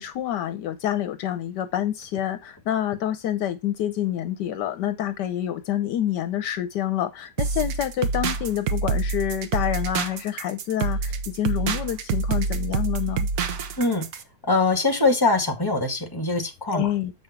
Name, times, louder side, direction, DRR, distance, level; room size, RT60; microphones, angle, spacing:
voice 1, 0.0-13.3 16.7-17.1, left 11 dB, 75° left, 1.3 m, -27 dB
sound 1, 7.4-14.2, right 4 dB, 65° right, 1.3 m, -27 dB
voice 2, 14.4-16.9, left 3 dB, 15° left, 1.9 m, -22 dB
7.8 x 5.4 x 4.4 m
omnidirectional pair, 1.9 m